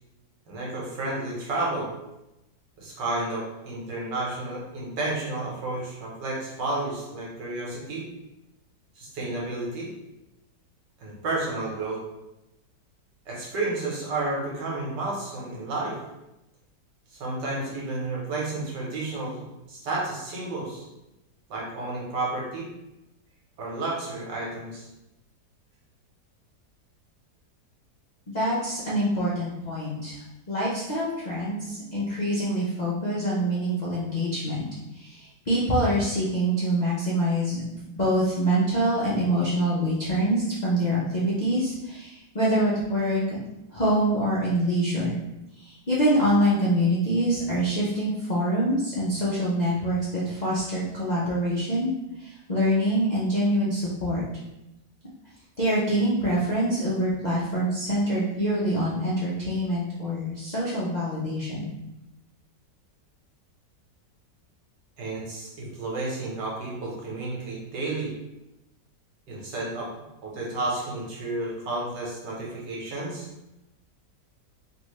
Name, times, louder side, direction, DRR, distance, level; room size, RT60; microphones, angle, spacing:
voice 1, 0.5-1.9 2.8-8.1 9.0-9.9 11.0-12.0 13.3-16.0 17.1-20.8 21.5-22.7 23.6-24.9 65.0-68.1 69.3-69.9 70.2-73.3, right 2 dB, 80° right, -4 dB, 1.6 m, -31 dB
voice 2, 28.3-30.2 30.5-34.6 34.9-43.4 43.7-45.1 45.6-51.9 52.2-54.2 55.6-61.7, equal, 75° left, -8 dB, 0.4 m, -25 dB
3.3 x 2.6 x 3.1 m, 0.93 s
omnidirectional pair, 1.9 m